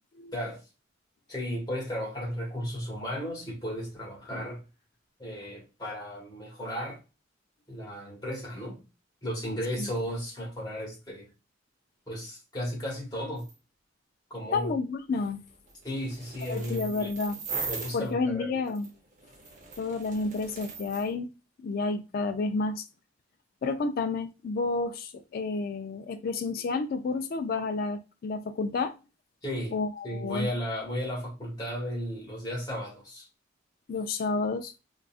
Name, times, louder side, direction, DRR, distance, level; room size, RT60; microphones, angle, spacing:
voice 1, 0.3-0.6 1.3-4.6 5.2-7.0 7.7-8.8 9.2-11.3 12.1-13.5 14.3-14.7 15.8-17.1 17.7-18.5 29.4-29.8 30.0-33.3, equal, 20° left, 1.4 m, -34 dB
sound 1, 13.4-13.5 15.2-18.1 18.7-21.1, right 4 dB, 45° right, 0.7 m, -40 dB
voice 2, 14.5-15.4 16.5-17.4 17.9-18.9 19.8-21.3 21.6-22.9 23.6-28.9 29.7-30.5 33.9-34.7, left 3 dB, 50° left, 0.3 m, -30 dB
3.8 x 2.4 x 2.4 m
head